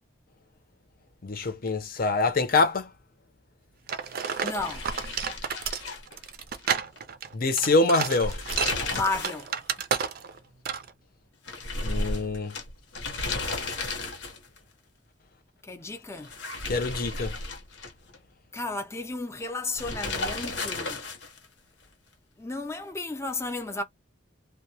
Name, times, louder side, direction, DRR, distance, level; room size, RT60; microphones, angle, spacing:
voice 1, 1.2-2.9 7.3-8.4 11.8-12.5 16.7-17.3, left 3 dB, 50° left, 0.7 m, -25 dB
sound 1, 3.9-10.4 10.7-10.9, right 7 dB, 55° right, 0.4 m, -31 dB
sound 2, 4.2-6.7 7.0-7.1 8.1-9.5 9.8-9.9 11.5-14.6 16.2-18.2 19.7-21.4, left 2 dB, 80° left, 0.9 m, -34 dB
voice 2, 4.4-4.9 8.9-9.5 15.7-16.3 18.5-21.0 22.4-23.8, left 2 dB, 15° left, 0.5 m, -33 dB
2.2 x 2.1 x 2.7 m
head